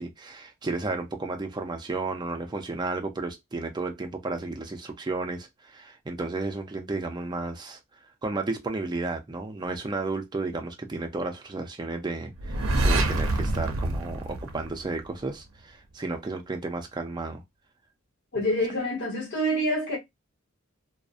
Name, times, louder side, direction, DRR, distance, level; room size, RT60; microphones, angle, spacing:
voice 1, 0.0-7.8 8.2-17.4, right 3 dB, 20° right, 0.4 m, -33 dB
sound 1, 12.4-15.2, right 2 dB, 75° right, 0.5 m, -26 dB
voice 2, 18.3-20.0, equal, 55° left, 1.0 m, -26 dB
2.6 x 2.0 x 2.3 m
head